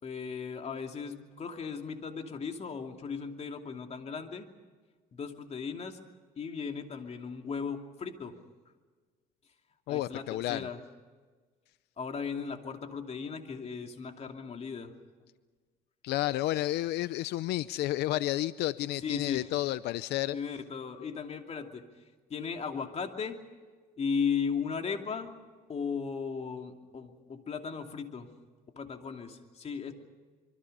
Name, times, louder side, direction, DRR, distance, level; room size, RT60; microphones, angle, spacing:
voice 1, 0.0-4.5 5.1-6.0 6.4-8.4 9.9-10.8 12.0-14.9 19.0-19.5 20.3-21.8 22.3-23.4 24.0-25.3 25.7-28.3 28.8-29.9, left 6 dB, 40° left, 4 dB, 2.8 m, -36 dB
voice 2, 9.9-10.7 16.0-20.4, left 15 dB, 80° left, 16 dB, 0.6 m, -31 dB
26.0 x 24.0 x 5.5 m, 1.4 s
cardioid pair, 110°, 17 cm